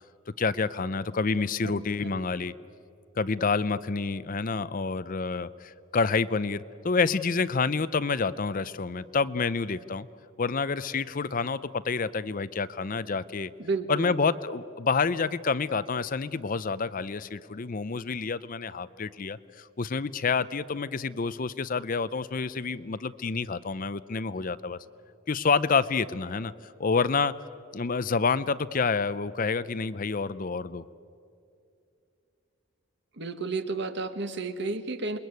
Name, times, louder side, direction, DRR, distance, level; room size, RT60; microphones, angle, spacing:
voice 1, 0.4-2.5 3.2-10.1 10.4-13.5 13.9-24.8 25.3-27.3 27.7-30.8, left 4 dB, 40° left, 15 dB, 0.5 m, -28 dB
voice 2, 1.6-2.3 13.6-14.2 33.2-35.2, right 3 dB, 55° right, 8 dB, 1.7 m, -32 dB
27.5 x 22.0 x 9.4 m, 2.6 s
head